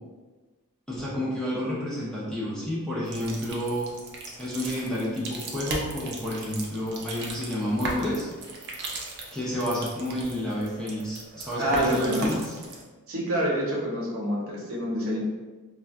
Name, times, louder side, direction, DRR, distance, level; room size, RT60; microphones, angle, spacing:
voice 1, 0.9-3.9 4.4-8.3 9.3-12.6, left 1 dB, 5° left, -7 dB, 0.6 m, -30 dB
sound 1, 3.1-12.8, right 2 dB, 50° right, 0.5 m, -38 dB
voice 2, 11.6-12.3 13.1-15.2, equal, 70° right, -4 dB, 0.8 m, -27 dB
2.2 x 2.2 x 3.6 m, 1.3 s
head